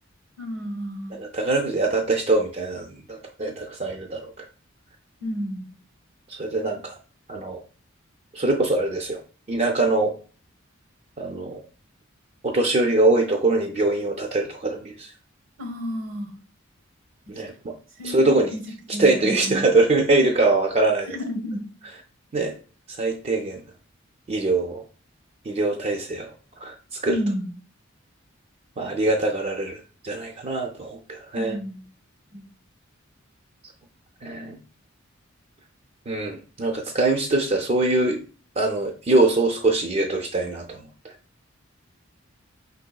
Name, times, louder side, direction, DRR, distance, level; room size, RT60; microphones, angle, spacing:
voice 1, 0.4-1.2 5.2-5.7 15.6-16.3 18.0-18.6 18.9-19.6 21.1-21.6 27.1-27.5 31.3-31.8 32.3-32.4, equal, 85° right, 5 dB, 0.9 m, -31 dB
voice 2, 1.1-4.5 6.3-6.9 7.3-7.6 8.3-9.2 9.5-10.1 11.2-11.6 12.4-15.1 17.3-17.5 18.0-18.5 19.0-21.2 22.3-22.5 23.0-23.6 24.3-24.8 25.5-26.3 26.6-27.2 28.8-31.6 34.2-34.6 36.1-38.2 38.6-41.1, right 2 dB, 35° right, 2 dB, 0.4 m, -23 dB
5.2 x 3.9 x 2.2 m, 0.39 s
head